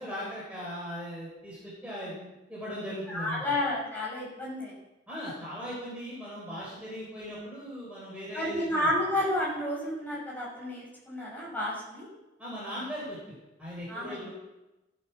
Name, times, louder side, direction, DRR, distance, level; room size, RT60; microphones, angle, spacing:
voice 1, 0.0-3.4 5.1-8.9 12.4-14.3, equal, 5° right, -7 dB, 4.5 m, -39 dB
voice 2, 3.1-4.7 8.3-12.1 13.9-14.3, left 1 dB, 10° left, -5 dB, 6.3 m, -31 dB
15.5 x 11.0 x 6.0 m, 1.0 s
head